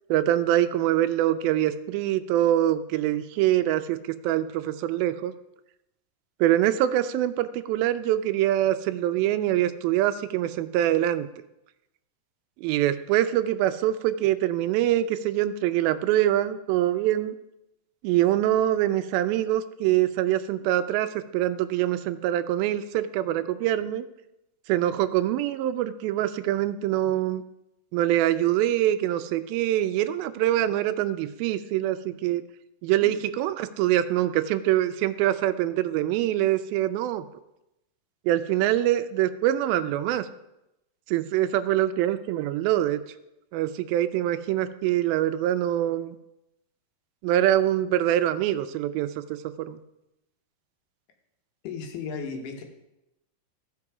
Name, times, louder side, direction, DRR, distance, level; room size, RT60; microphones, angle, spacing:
voice 1, 0.1-5.3 6.4-11.3 12.6-17.4 18.0-24.0 24.7-27.4 27.9-32.4 32.8-37.3 38.3-40.3 41.1-43.0 43.5-46.2 47.2-49.1 49.7-49.8, right 13 dB, 90° right, 11 dB, 2.4 m, -24 dB
voice 2, 51.6-52.6, left 5 dB, 70° left, 4 dB, 2.5 m, -35 dB
14.5 x 5.3 x 4.8 m, 0.90 s
omnidirectional pair, 4.1 m